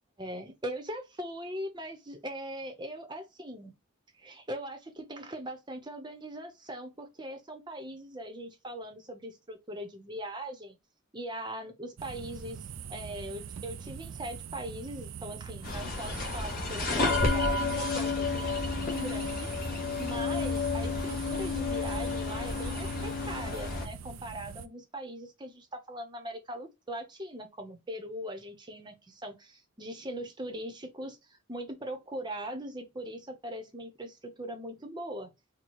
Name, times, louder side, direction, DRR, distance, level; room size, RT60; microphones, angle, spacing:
voice 1, 0.2-3.7 4.1-10.8 11.1-35.3, right 1 dB, 20° right, 0.8 m, -41 dB
sound 1, 12.0-24.7, right 6 dB, 85° right, 0.4 m, -43 dB
sound 2, 15.6-23.9, left 3 dB, 45° left, 1.4 m, -31 dB
4.7 x 2.2 x 4.2 m
head